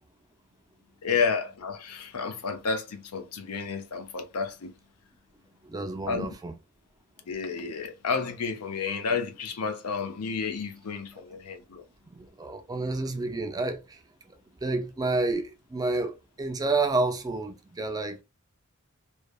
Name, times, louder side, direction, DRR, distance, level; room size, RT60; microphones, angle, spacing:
voice 1, 1.0-4.7 6.1-6.3 7.3-11.8, left 5 dB, 80° left, 0.6 m, -31 dB
voice 2, 5.6-6.5 12.1-14.0 14.6-18.2, right 3 dB, 15° right, 0.3 m, -29 dB
3.1 x 2.0 x 2.2 m
head